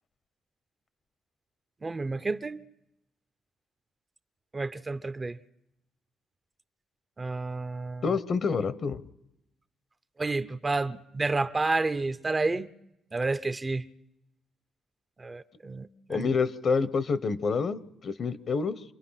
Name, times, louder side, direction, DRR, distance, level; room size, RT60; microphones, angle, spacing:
voice 1, 1.8-2.6 4.5-5.4 7.2-8.0 10.2-12.7 13.1-13.8 15.2-16.3, right 3 dB, 25° right, 0.7 m, -30 dB
voice 2, 8.0-9.0 16.1-18.8, left 5 dB, 50° left, 1.1 m, -28 dB
27.0 x 21.5 x 5.8 m
cardioid pair, 90°, 0 cm